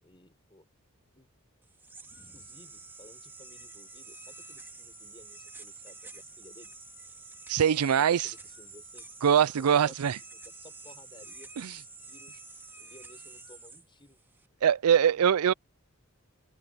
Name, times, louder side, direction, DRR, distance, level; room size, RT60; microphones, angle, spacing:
voice 1, 0.0-0.7 1.1-1.3 2.2-6.7 8.0-11.5 12.0-12.4 12.8-14.2 14.9-15.4, left 1 dB, 25° left, 4.9 m, -56 dB
sound 1, 1.6-14.5, right 3 dB, 10° right, 2.0 m, -48 dB
voice 2, 7.5-8.3 9.2-10.2 11.6-11.7 14.6-15.5, right 8 dB, 85° right, 0.4 m, -23 dB
head